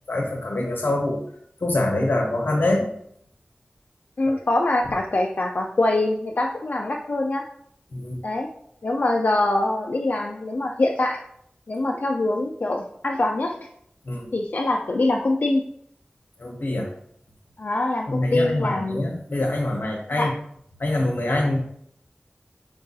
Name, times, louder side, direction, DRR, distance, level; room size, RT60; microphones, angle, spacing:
voice 1, 0.1-1.2 1.6-2.9 7.9-8.2 14.0-14.3 16.4-16.9 18.1-20.3 20.8-21.6, left 1 dB, 85° left, 1 dB, 0.7 m, -24 dB
voice 2, 4.2-7.5 8.2-8.5 8.8-11.2 11.7-13.6 14.3-15.6 17.6-19.1 20.2-20.3, left 2 dB, 65° left, 0 dB, 0.3 m, -24 dB
4.5 x 2.6 x 2.3 m, 0.68 s
wide cardioid pair, 50°, 3 cm